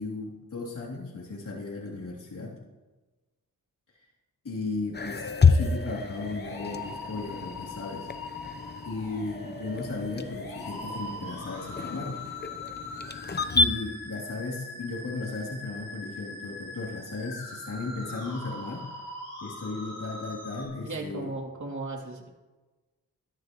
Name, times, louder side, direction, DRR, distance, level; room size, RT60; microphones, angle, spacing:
voice 1, 0.0-2.6 4.4-8.1 8.8-12.2 13.5-18.9 19.4-21.3, left 3 dB, 60° left, -6 dB, 3.2 m, -35 dB
sound 1, 4.9-13.7, left 4 dB, 25° left, 0.8 m, -29 dB
sound 2, 5.1-20.7, left 2 dB, 85° left, 5.7 m, -41 dB
voice 2, 20.8-22.3, right 2 dB, 50° right, -1 dB, 3.0 m, -36 dB
21.0 x 12.5 x 3.1 m, 1.2 s
cardioid pair, 65°, 37 cm